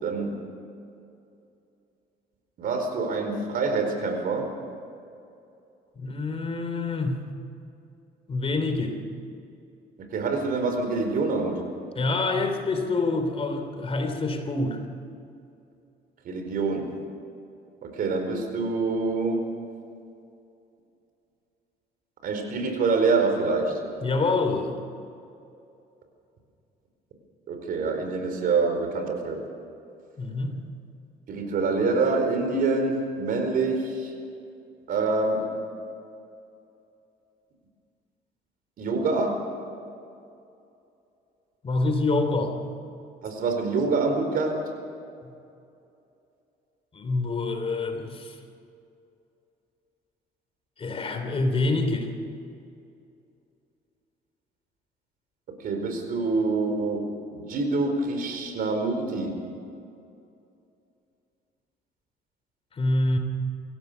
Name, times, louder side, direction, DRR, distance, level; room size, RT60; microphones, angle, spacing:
voice 1, 0.0-0.4 2.6-4.5 10.0-11.6 16.2-17.0 17.8-19.4 22.2-23.8 27.5-29.4 31.3-34.1 34.9-35.5 38.8-39.4 43.2-44.6 55.6-57.1 57.3-59.4, right 3 dB, 60° right, 5 dB, 4.6 m, -26 dB
voice 2, 6.0-7.2 8.3-9.0 12.0-14.8 24.0-24.7 30.2-30.6 41.6-42.6 46.9-48.3 50.8-52.1 62.8-63.2, left 3 dB, 35° left, 6 dB, 3.0 m, -26 dB
25.0 x 16.5 x 6.9 m, 2.6 s
cardioid pair, 110°, 17 cm